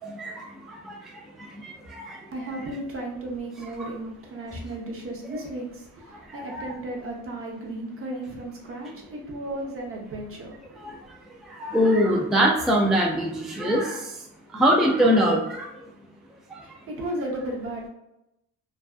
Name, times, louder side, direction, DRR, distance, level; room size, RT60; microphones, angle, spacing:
voice 1, 0.0-2.3 6.3-6.7 10.8-11.2 11.4-14.3 14.5-15.8 16.5-16.6, equal, ahead, -1 dB, 0.3 m, -24 dB
voice 2, 2.3-10.8 16.6-17.9, right 1 dB, 45° right, 0 dB, 0.7 m, -34 dB
2.5 x 2.2 x 2.3 m, 0.87 s
cardioid pair, 90°, 30 cm